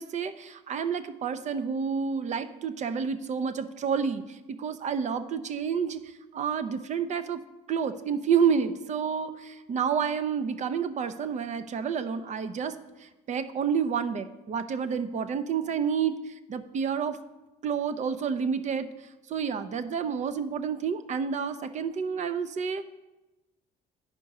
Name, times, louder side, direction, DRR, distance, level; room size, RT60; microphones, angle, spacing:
voice 1, 0.0-7.4 7.7-17.2 17.6-18.9 19.3-22.8, right 6 dB, 45° right, 12 dB, 0.6 m, -29 dB
10.5 x 5.2 x 4.7 m, 1.0 s
cardioid pair, 110°, 17 cm